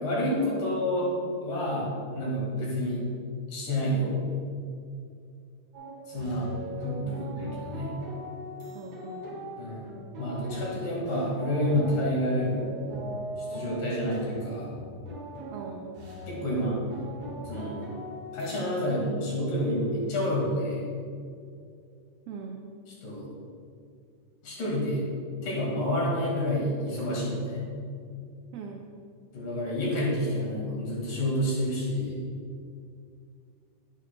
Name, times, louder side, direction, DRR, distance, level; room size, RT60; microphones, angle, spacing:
voice 1, 0.0-1.1 1.4-3.0 3.5-4.2 6.1-6.5 6.8-7.9 9.6-9.9 10.2-12.7 13.4-14.7 16.3-16.8 17.5-17.8 18.3-20.8 22.9-23.2 24.4-25.0 25.4-27.7 29.3-32.2, equal, 60° left, -5 dB, 3.3 m, -29 dB
sound 1, 5.7-18.6, right 1 dB, 50° right, 2.2 m, -40 dB
voice 2, 8.8-9.3 15.5-15.9 22.3-22.6 28.5-28.8, right 5 dB, 85° right, 1 dB, 2.1 m, -41 dB
11.5 x 8.8 x 2.3 m, 2.4 s
omnidirectional pair, 4.8 m